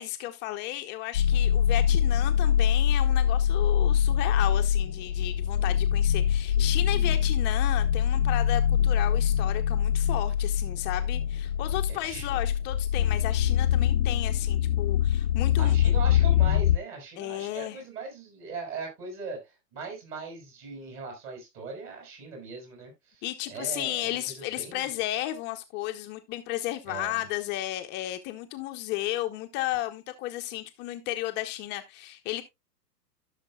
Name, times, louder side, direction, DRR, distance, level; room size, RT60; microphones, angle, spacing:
voice 1, 0.0-15.9 17.2-17.8 23.2-32.4, left 15 dB, 20° left, 0.7 m, -34 dB
sound 1, 1.1-16.8, left 9 dB, 85° left, 0.6 m, -24 dB
voice 2, 11.9-12.5 15.6-19.4 19.7-23.2 23.5-24.2 24.6-24.9 26.9-27.2, right 4 dB, 35° right, 5.7 m, -39 dB
15.0 x 6.5 x 2.2 m
hypercardioid pair, 115°, 48 cm